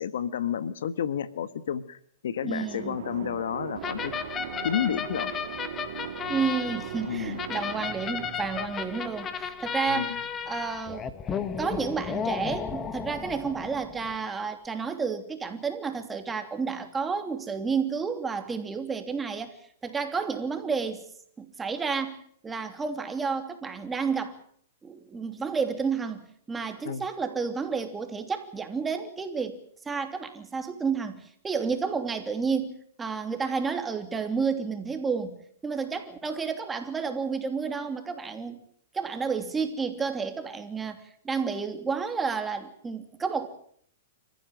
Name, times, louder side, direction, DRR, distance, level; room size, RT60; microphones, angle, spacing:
voice 1, 0.0-2.0 2.2-4.1 4.6-5.3 7.0-7.4 9.9-10.2 26.8-27.0, left 9 dB, 75° left, 1.4 m, -31 dB
voice 2, 2.4-3.0 6.3-10.2 10.5-11.1 11.6-19.5 19.8-21.0 21.4-24.4 24.8-29.6 29.8-35.4 35.6-38.6 38.9-43.5, right 5 dB, 15° right, 2.9 m, -31 dB
sound 1, 2.5-10.1, right 10 dB, 70° right, 1.9 m, -40 dB
sound 2, 3.8-14.2, left 7 dB, 20° left, 1.8 m, -34 dB
27.5 x 15.0 x 9.1 m
hypercardioid pair, 130°, 0 cm